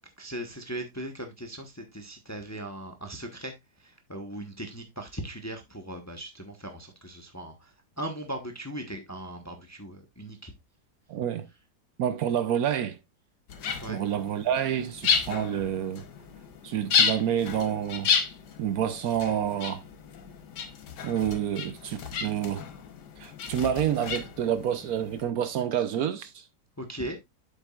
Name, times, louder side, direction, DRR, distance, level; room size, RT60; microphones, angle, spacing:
voice 1, 0.2-3.5 3.8-10.5 13.8-14.0 26.8-27.2, right 1 dB, 10° left, 0.9 m, -38 dB
voice 2, 11.1-11.5 12.0-13.0 13.9-16.0 16.6-18.1 18.6-19.8 21.0-22.7 23.2-26.4, right 9 dB, 70° right, 1.1 m, -28 dB
sound 1, 13.5-25.2, left 6 dB, 80° left, 1.6 m, -32 dB
8.0 x 7.3 x 2.4 m
omnidirectional pair, 1.8 m